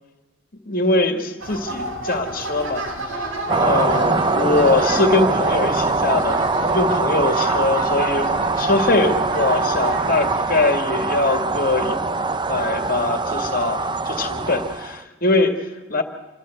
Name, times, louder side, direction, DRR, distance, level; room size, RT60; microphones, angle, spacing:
voice 1, 0.7-2.9 3.1-6.5 6.7-12.0 12.5-16.0, left 2 dB, 45° left, 5 dB, 2.1 m, -22 dB
sound 1, 1.4-10.4, right 1 dB, 90° right, 4.4 m, -31 dB
sound 2, 3.5-15.0, right 3 dB, 25° right, 0.7 m, -22 dB
27.5 x 12.5 x 7.9 m, 1.2 s
head